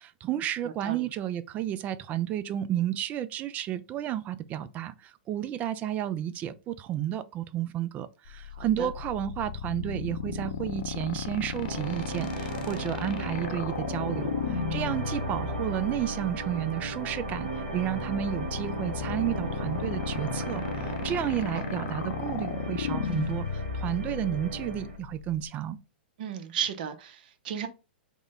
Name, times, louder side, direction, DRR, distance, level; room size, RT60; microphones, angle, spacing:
voice 1, 0.0-25.8, right 11 dB, 30° right, 0.3 m, -32 dB
sound 1, 8.3-25.5, left 7 dB, 60° left, 0.6 m, -35 dB
voice 2, 8.5-8.9 21.5-21.6 26.2-27.7, right 8 dB, 60° right, 0.7 m, -34 dB
sound 2, 11.6-25.0, right 2 dB, 80° right, 1.1 m, -36 dB
3.6 x 2.1 x 3.6 m
hypercardioid pair, 125°, 5 cm